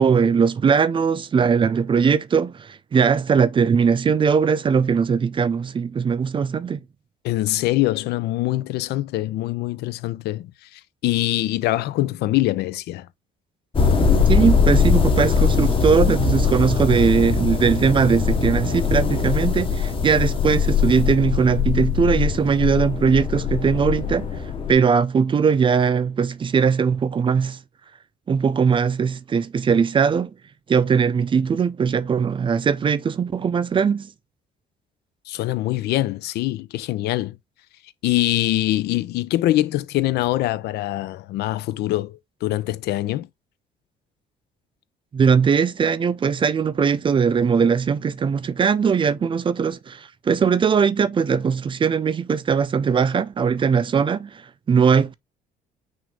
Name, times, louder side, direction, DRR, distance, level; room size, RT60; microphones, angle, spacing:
voice 1, 0.0-6.8 14.3-24.3 24.7-27.6 28.3-30.3 30.7-34.1 45.1-54.4 54.7-55.1, right 6 dB, 30° right, 0.5 m, -20 dB
voice 2, 7.2-10.5 11.0-13.1 35.3-37.4 38.0-43.3, left 16 dB, 75° left, 0.5 m, -23 dB
sound 1, 13.7-24.7, left 5 dB, 30° left, 1.1 m, -21 dB
6.0 x 2.6 x 3.4 m
cardioid pair, 110°, 17 cm